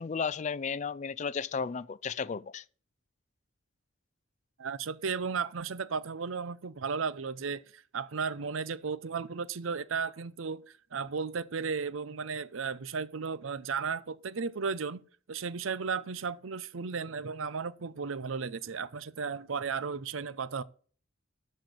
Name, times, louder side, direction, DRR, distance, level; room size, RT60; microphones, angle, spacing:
voice 1, 0.0-2.6, left 5 dB, 35° left, 0.4 m, -34 dB
voice 2, 4.6-10.6 10.9-15.0 15.3-20.6, right 5 dB, 85° right, 0.6 m, -34 dB
13.0 x 4.4 x 7.9 m
head